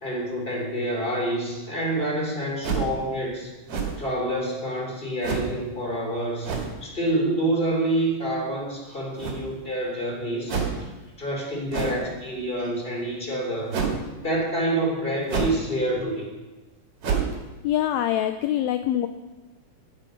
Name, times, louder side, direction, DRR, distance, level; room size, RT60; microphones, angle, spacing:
voice 1, 0.0-3.5 4.0-6.5 6.8-10.6 11.2-13.8 14.2-16.3, right 1 dB, 15° left, -1 dB, 3.6 m, -27 dB
sound 1, 2.6-3.0 3.7-4.1 5.2-5.6 6.4-6.8 9.2-9.6 10.5-10.8 11.7-12.1 13.7-14.0 15.3-15.7 16.0-16.1 17.0-17.4, right 6 dB, 50° right, 2.8 m, -27 dB
voice 2, 17.6-19.1, left 12 dB, 80° left, 8 dB, 1.6 m, -24 dB
16.0 x 10.0 x 5.3 m, 1.1 s
omnidirectional pair, 3.7 m